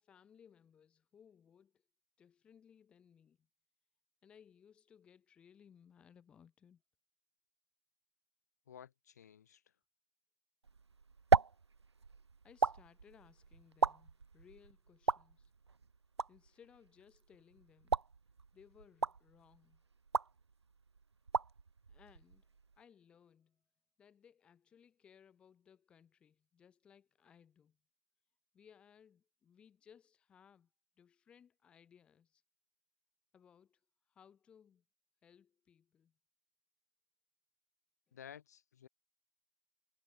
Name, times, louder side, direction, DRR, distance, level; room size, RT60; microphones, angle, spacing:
voice 1, 0.0-1.8 2.2-3.5 4.2-6.8 12.4-15.5 16.3-18.0 18.5-19.8 21.9-22.5 22.8-23.6 24.0-27.8 28.5-30.7 31.0-32.4 33.3-33.8 34.1-34.8 35.2-36.1 38.1-38.2, left 8 dB, 5° left, 4.3 m, -64 dB
voice 2, 8.7-9.6 38.1-38.9, left 9 dB, 30° left, 4.5 m, -54 dB
sound 1, 10.6-22.8, right 5 dB, 55° right, 1.0 m, -37 dB
figure-of-eight pair, 155°, 17 cm